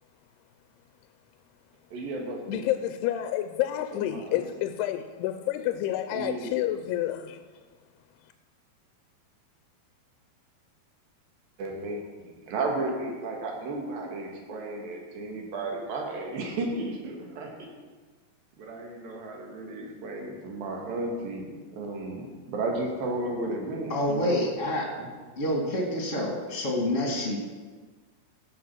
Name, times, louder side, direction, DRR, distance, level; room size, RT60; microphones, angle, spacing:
voice 1, 1.9-2.6 3.9-4.5 6.1-6.6 11.6-17.7 18.6-24.4 25.0-25.1, right 2 dB, 65° right, 1 dB, 3.4 m, -34 dB
voice 2, 2.5-7.4, left 12 dB, 85° left, 8 dB, 2.6 m, -29 dB
voice 3, 23.9-24.9 25.4-27.4, left 1 dB, 25° left, 0 dB, 2.0 m, -27 dB
15.0 x 7.1 x 6.0 m, 1.4 s
omnidirectional pair, 4.6 m